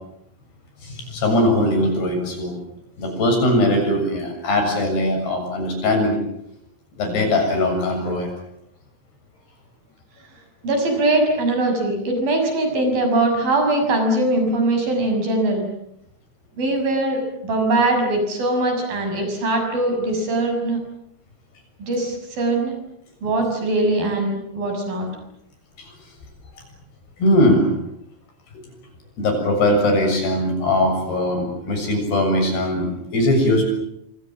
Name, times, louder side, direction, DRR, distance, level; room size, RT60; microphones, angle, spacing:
voice 1, 0.8-2.5 3.0-6.2 7.0-8.3 25.8-25.9 27.2-27.7 29.2-33.6, left 1 dB, 75° left, 4 dB, 9.1 m, -20 dB
voice 2, 10.6-15.7 16.6-20.8 21.8-22.7 23.2-25.1, right 2 dB, 60° right, 4 dB, 8.1 m, -21 dB
27.0 x 26.0 x 7.4 m, 0.76 s
omnidirectional pair, 4.7 m